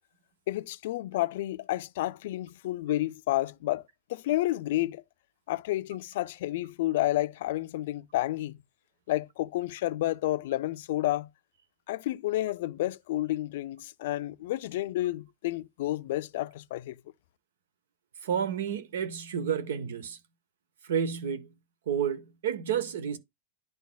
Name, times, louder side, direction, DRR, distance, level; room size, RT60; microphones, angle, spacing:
voice 1, 0.5-3.8 4.1-5.0 5.5-8.6 9.1-11.3 11.9-17.0, left 16 dB, 60° left, 0.3 m, -30 dB
voice 2, 18.2-20.2 20.8-21.5 21.9-23.2, right 8 dB, 85° right, 0.9 m, -30 dB
11.0 x 4.1 x 2.2 m
supercardioid pair, 165°, 0 cm